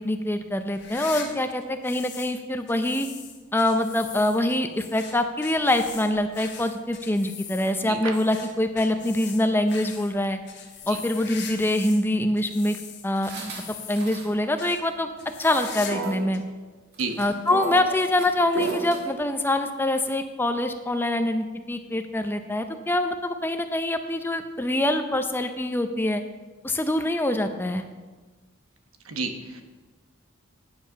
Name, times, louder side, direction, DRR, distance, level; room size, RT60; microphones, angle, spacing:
voice 1, 0.0-3.1 3.5-10.4 10.9-12.8 13.0-13.3 13.9-15.1 15.4-16.4 17.2-26.2 26.6-27.8, left 1 dB, 10° left, 7 dB, 0.6 m, -25 dB
sound 1, 0.7-2.4 2.7-12.1 12.4-14.2 14.6-14.8 15.2-16.1 16.3-16.4 17.2-17.3 18.6-18.7, left 7 dB, 55° left, 1.3 m, -41 dB
voice 2, 7.8-8.2 10.8-11.0 17.0-17.2 29.0-29.6, right 4 dB, 85° right, 6 dB, 1.1 m, -32 dB
sound 2, 13.2-14.3 14.6-14.7 15.2-15.6 15.9-16.3 17.0-19.0, right 4 dB, 50° right, 1.5 m, -33 dB
9.3 x 7.3 x 5.7 m, 1.3 s
head